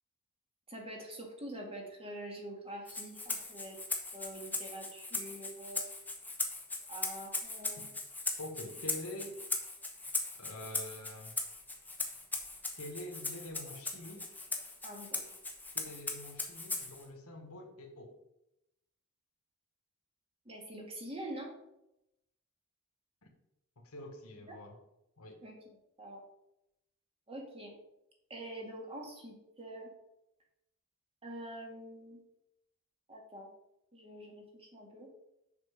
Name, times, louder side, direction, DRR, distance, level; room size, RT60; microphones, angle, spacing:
voice 1, 0.7-3.8 4.1-5.9 6.9-7.9 14.8-15.2 20.5-21.5 24.5-24.6 25.4-25.6 26.0-26.2 27.3-27.7 28.3-29.9 31.2-32.2 33.1-33.5 33.9-35.1, right 1 dB, 25° right, 0 dB, 1.9 m, -45 dB
Rattle (instrument), 2.9-17.0, left 2 dB, 10° left, 1.1 m, -39 dB
voice 2, 8.4-9.4 10.3-11.3 12.8-14.5 15.7-18.2 23.2-23.3 23.8-24.8 25.2-25.4, left 1 dB, 75° left, 2 dB, 1.6 m, -46 dB
7.0 x 6.0 x 5.1 m, 0.86 s
head